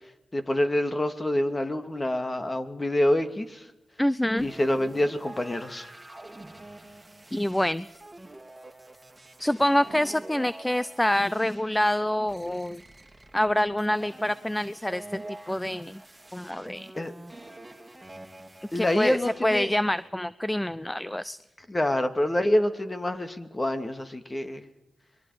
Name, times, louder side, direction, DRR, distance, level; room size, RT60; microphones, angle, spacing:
voice 1, 0.3-3.7 4.4-5.9 17.0-17.1 18.7-19.7 21.7-24.7, left 1 dB, 30° left, 8 dB, 2.5 m, -26 dB
voice 2, 4.0-4.5 7.3-7.9 9.4-12.8 13.3-15.2 15.5-16.0 16.3-16.9 18.7-21.4, left 1 dB, 10° left, 17 dB, 0.6 m, -26 dB
sound 1, 4.4-20.1, right 1 dB, 15° right, 3.1 m, -46 dB
26.5 x 22.5 x 5.1 m, 0.99 s
cardioid pair, 50°, 0 cm